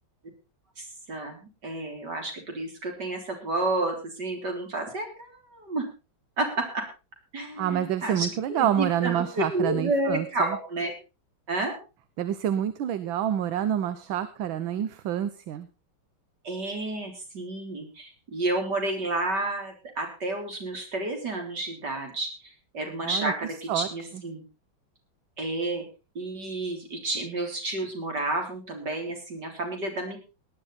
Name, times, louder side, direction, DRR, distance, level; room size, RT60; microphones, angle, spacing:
voice 1, 0.8-5.9 6.4-6.8 7.3-10.9 11.5-11.8 16.4-24.4 25.4-25.8 26.2-30.2, right 2 dB, 55° right, 3 dB, 4.2 m, -31 dB
voice 2, 7.6-10.6 12.2-15.7 23.0-23.3 23.7-23.9, right 10 dB, 80° right, 13 dB, 1.6 m, -27 dB
18.0 x 11.0 x 4.1 m, 0.31 s
omnidirectional pair, 2.2 m